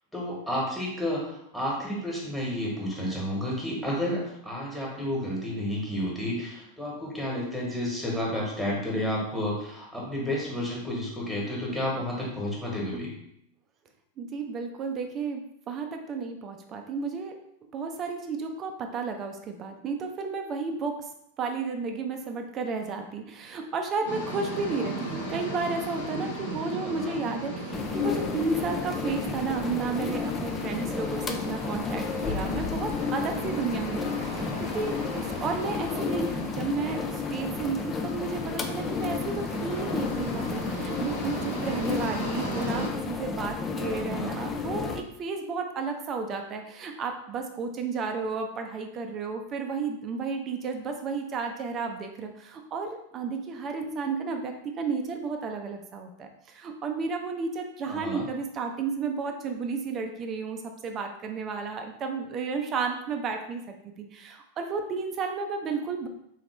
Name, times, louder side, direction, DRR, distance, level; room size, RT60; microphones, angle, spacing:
voice 1, 0.1-13.1 26.8-27.2 43.9-44.4 57.9-58.2, left 1 dB, ahead, -4 dB, 1.4 m, -31 dB
voice 2, 14.2-17.3 17.7-21.0 21.4-66.1, right 4 dB, 30° right, 4 dB, 0.5 m, -32 dB
sound 1, 24.0-42.9, right 1 dB, 70° left, 1.4 m, -37 dB
sound 2, 27.7-45.0, left 5 dB, 20° left, 0.4 m, -32 dB
3.8 x 3.0 x 3.2 m, 0.76 s
figure-of-eight pair, 90°, 0 cm